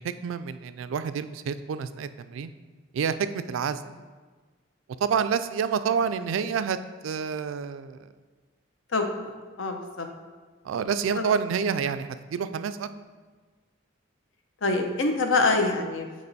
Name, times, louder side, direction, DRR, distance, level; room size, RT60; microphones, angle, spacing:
voice 1, 0.0-2.5 2.9-3.8 5.0-6.8 7.0-8.0 10.6-12.9, right 6 dB, 75° right, 12 dB, 0.3 m, -28 dB
voice 2, 8.9-10.1 11.2-11.3 14.6-16.3, left 3 dB, 70° left, 4 dB, 0.7 m, -26 dB
8.7 x 3.0 x 4.0 m, 1.4 s
head